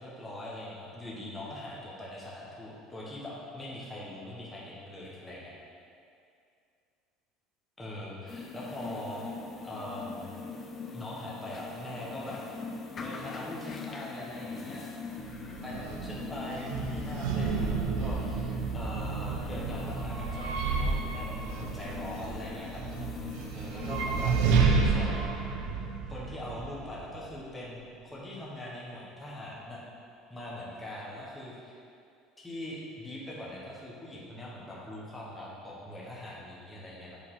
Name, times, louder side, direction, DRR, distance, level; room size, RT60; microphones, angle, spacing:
voice 1, 0.0-5.5 7.8-9.3 9.6-10.3 10.9-12.4 13.0-14.8 15.6-22.8 23.5-25.2 26.1-29.8 30.3-31.7 32.4-37.2, left 1 dB, 10° left, -6 dB, 1.3 m, -42 dB
sound 1, 8.3-24.6, left 4 dB, 30° left, 0.6 m, -42 dB
sound 2, 15.2-27.3, right 4 dB, 80° right, 0.7 m, -31 dB
7.4 x 4.7 x 3.8 m, 2.4 s
cardioid pair, 145°, 0 cm